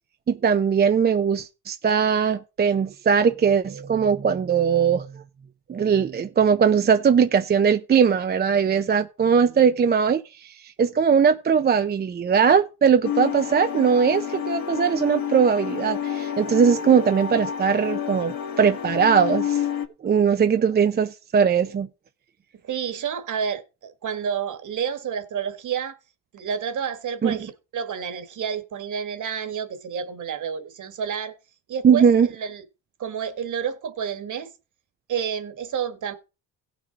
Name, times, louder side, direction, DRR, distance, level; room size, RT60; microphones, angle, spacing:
voice 1, 0.3-5.1 5.7-19.6 20.0-21.9 27.2-27.4 31.8-32.3, right 6 dB, 25° right, 0.6 m, -20 dB
sound 1, 13.0-19.9, left 9 dB, 60° left, 1.6 m, -29 dB
voice 2, 22.6-26.0 26.3-31.3 31.7-32.6 33.0-34.5 35.1-36.1, right 7 dB, 50° right, 1.8 m, -30 dB
16.0 x 6.1 x 4.0 m
supercardioid pair, 95°, 39 cm